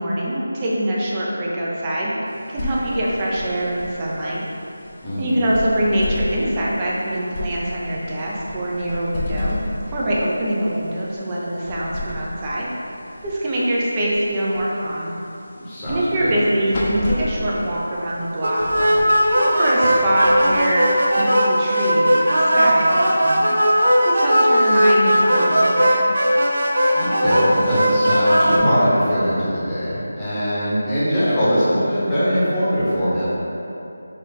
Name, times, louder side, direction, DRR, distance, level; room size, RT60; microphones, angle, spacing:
voice 1, 0.0-2.1 2.5-4.4 5.2-9.6 9.9-12.7 13.2-15.2 15.9-26.1, right 1 dB, 20° right, -6 dB, 0.5 m, -24 dB
sound 1, 2.3-21.1, left 1 dB, 30° left, 0.6 m, -33 dB
voice 2, 5.0-5.4 15.6-16.3 26.9-33.2, equal, 10° left, -13 dB, 1.0 m, -21 dB
sound 2, 18.4-28.6, equal, 65° right, 0.6 m, -17 dB
4.2 x 2.5 x 3.9 m, 2.8 s
figure-of-eight pair, 165°, 0 cm